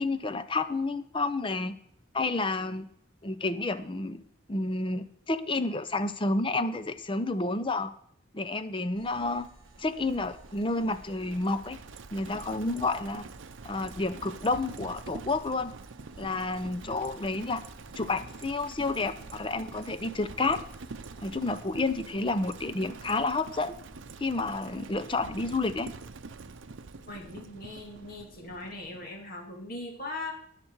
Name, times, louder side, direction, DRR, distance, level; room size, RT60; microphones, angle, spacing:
voice 1, 0.0-1.7 2.1-2.9 3.2-4.2 4.5-7.9 8.3-9.5 9.8-11.8 12.1-13.2 13.6-15.7 16.2-17.6 18.0-20.6 21.2-23.8 24.2-25.9, left 3 dB, 25° left, 12 dB, 0.6 m, -30 dB
sound 1, 8.9-21.5, right 1 dB, 20° right, 2.6 m, -55 dB
Livestock farm animals working animals, 9.4-29.1, right 4 dB, 70° right, 0.6 m, -46 dB
voice 2, 27.1-30.3, left 2 dB, 45° left, 1 dB, 2.4 m, -40 dB
18.0 x 6.7 x 4.6 m, 0.69 s
head